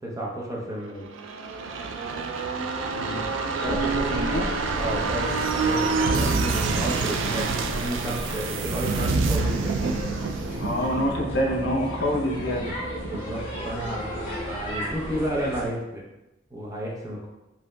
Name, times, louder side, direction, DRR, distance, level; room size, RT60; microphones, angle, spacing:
voice 1, 0.0-1.1 3.6-4.2 4.8-9.8 13.1-16.0 16.5-17.3, equal, 15° right, -3 dB, 0.7 m, -32 dB
sound 1, 1.1-14.5 14.9-15.0, right 4 dB, 80° right, 0.4 m, -28 dB
sound 2, 3.6-15.7, equal, 30° left, 1.4 m, -35 dB
voice 2, 3.7-4.4 10.6-12.7, equal, 65° left, -1 dB, 0.7 m, -27 dB
5.1 x 2.7 x 2.2 m, 0.95 s
head